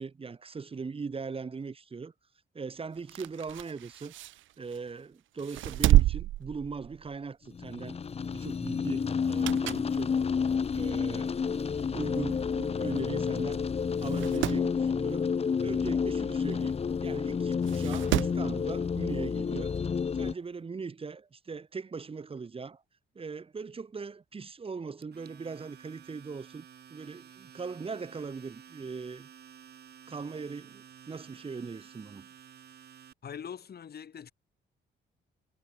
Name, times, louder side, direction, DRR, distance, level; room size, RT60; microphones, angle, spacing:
voice 1, 0.0-2.1 2.5-4.1 4.6-8.0 8.3-10.2 10.7-13.6 14.0-15.3 15.6-19.7 20.1-22.8 23.1-29.3 30.1-32.3, right 5 dB, 30° right, 1.1 m, -40 dB
sound 1, 3.0-4.9 5.4-7.3 7.6-7.8 9.1-10.0 10.4-10.5 11.4-11.5 11.7-11.8 12.0-12.1 13.0-13.2 13.5-13.6 14.0-14.7 16.5-16.6 17.6-18.5 19.8-19.9, right 15 dB, 75° right, 0.6 m, -29 dB
sound 2, 7.5-20.3, left 6 dB, 30° left, 0.8 m, -30 dB
Domestic sounds home sounds, 25.0-33.1, right 8 dB, 55° right, 2.7 m, -53 dB
voice 2, 33.2-34.3, left 7 dB, 55° left, 7.6 m, -43 dB
cardioid pair, 90°, 20 cm